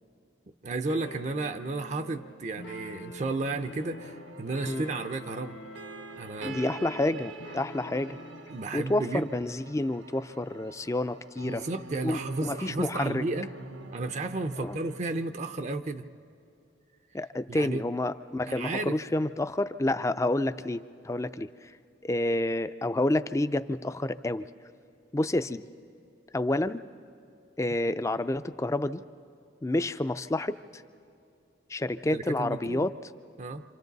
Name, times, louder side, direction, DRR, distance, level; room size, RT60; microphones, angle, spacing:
voice 1, 0.6-5.6 6.2-6.6 8.5-9.3 11.4-13.5 13.9-16.1 17.5-17.8 18.5-19.0 32.1-32.9 33.4-33.6, right 3 dB, 40° right, 10 dB, 0.5 m, -33 dB
sound 1, 0.9-8.6, left 1 dB, 80° left, 0.9 m, -46 dB
sound 2, 4.0-15.2, right 3 dB, 80° right, 1.2 m, -46 dB
voice 2, 6.4-8.2 8.7-11.6 12.0-13.2 14.6-14.8 17.1-21.8 22.0-24.5 25.1-25.7 26.3-26.8 27.6-29.0 29.6-30.8 31.7-32.9, left 1 dB, 15° left, 12 dB, 0.4 m, -29 dB
27.5 x 26.5 x 4.0 m, 2.6 s
head